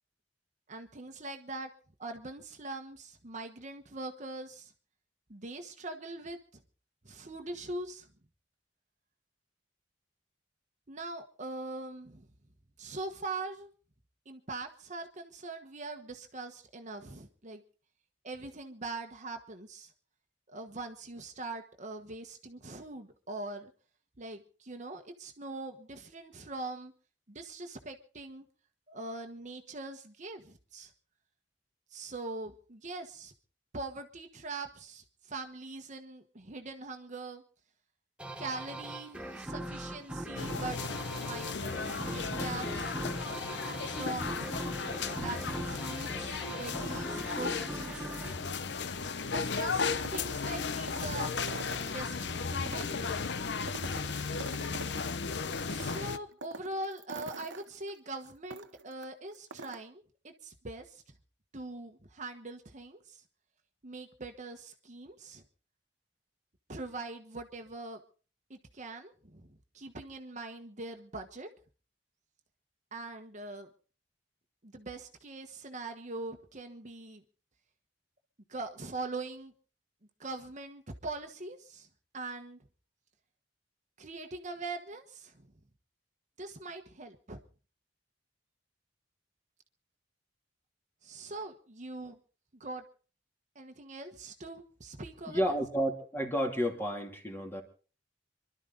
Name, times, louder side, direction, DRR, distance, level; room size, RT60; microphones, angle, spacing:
voice 1, 0.7-1.7 2.0-4.7 5.3-6.6 7.0-8.1 10.9-12.3 12.8-13.7 14.2-17.6 18.2-19.9 20.5-23.7 24.2-26.9 27.3-28.4 28.9-30.9 31.9-33.3 33.7-37.4 38.4-40.8 41.2-43.0 43.9-44.4 45.1-48.2 49.3-51.4 51.8-53.2 55.7-61.0 61.5-63.2 63.8-65.4 66.7-68.0 68.5-71.5 72.9-73.7 74.6-77.2 78.5-79.5 80.2-81.9 82.1-82.6 84.0-85.5 86.4-87.4 91.0-92.2 92.6-92.8 93.5-95.6, right 2 dB, 40° right, 6 dB, 1.2 m, -42 dB
sound 1, 38.2-49.4, right 1 dB, 5° right, 1.2 m, -40 dB
sound 2, 40.4-56.2, left 5 dB, 65° left, 0.8 m, -35 dB
sound 3, 49.6-52.2 52.6-55.3 55.6-59.0 59.3-59.8, right 4 dB, 80° right, 1.0 m, -45 dB
voice 2, 95.3-97.6, equal, 10° left, 2 dB, 2.6 m, -31 dB
26.5 x 12.0 x 4.0 m, 0.39 s
head